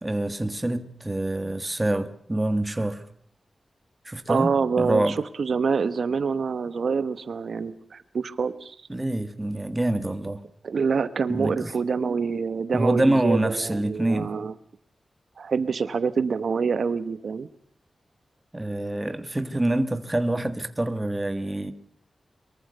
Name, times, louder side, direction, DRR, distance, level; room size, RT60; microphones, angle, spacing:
voice 1, 0.0-3.0 4.0-5.2 8.9-10.4 11.3-11.7 12.7-14.3 18.5-21.7, right 1 dB, 15° right, 1.5 m, -26 dB
voice 2, 4.3-8.8 10.6-14.5 15.4-17.5, right 5 dB, 65° right, 1.1 m, -26 dB
23.5 x 23.0 x 6.7 m
wide cardioid pair, 180°, 0 cm